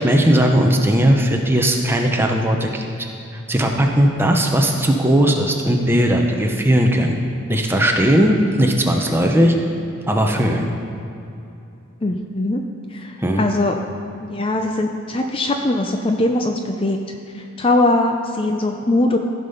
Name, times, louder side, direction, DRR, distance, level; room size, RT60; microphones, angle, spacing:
voice 1, 0.0-2.9 3.3-7.2 7.5-9.5 10.1-10.7 13.2-13.4, equal, 10° right, 2 dB, 0.8 m, -17 dB
voice 2, 12.0-12.6 12.9-13.7 14.2-17.0 17.3-19.2, left 2 dB, 25° left, 4 dB, 0.4 m, -21 dB
15.5 x 5.4 x 5.6 m, 2.7 s
head